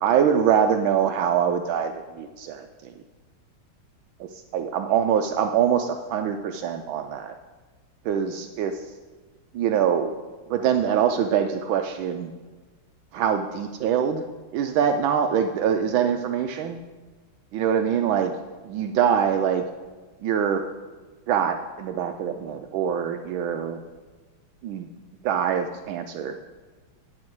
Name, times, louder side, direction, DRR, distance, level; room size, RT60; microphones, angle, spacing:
voice 1, 0.0-2.9 4.2-7.3 8.0-8.9 9.5-10.1 10.5-12.3 13.1-14.2 14.5-16.8 17.5-18.3 18.6-19.6 20.2-20.7 21.3-23.8 24.6-24.9 25.2-26.4, right 8 dB, 75° right, 6 dB, 1.3 m, -24 dB
9.7 x 8.3 x 4.6 m, 1.3 s
omnidirectional pair, 2.3 m